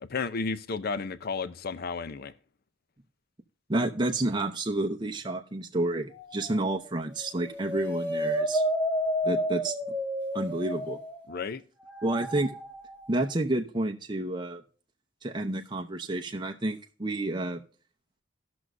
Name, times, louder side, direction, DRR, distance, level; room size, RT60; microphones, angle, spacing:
voice 1, 0.0-2.3 11.3-11.6, left 4 dB, 55° left, 0.6 m, -33 dB
voice 2, 3.7-8.6 9.2-9.7 10.3-11.0 12.0-12.5 13.1-14.6 15.2-17.6, right 2 dB, 25° right, 0.8 m, -30 dB
sound 1, 6.2-6.8 7.2-11.3 11.9-13.2, equal, 10° left, 1.8 m, -30 dB
18.5 x 6.2 x 2.6 m
head